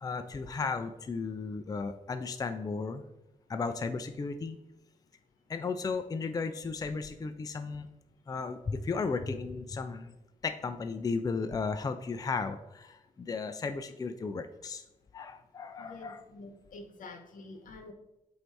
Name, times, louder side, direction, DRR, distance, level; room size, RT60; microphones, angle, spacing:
voice 1, 0.0-3.0 3.5-4.6 5.5-7.9 8.3-10.1 10.4-14.8 15.1-16.2, left 4 dB, 25° left, 8 dB, 0.4 m, -35 dB
voice 2, 15.8-17.9, left 3 dB, 80° left, 5 dB, 0.9 m, -48 dB
7.8 x 2.7 x 4.5 m, 0.91 s
cardioid pair, 85°, 14 cm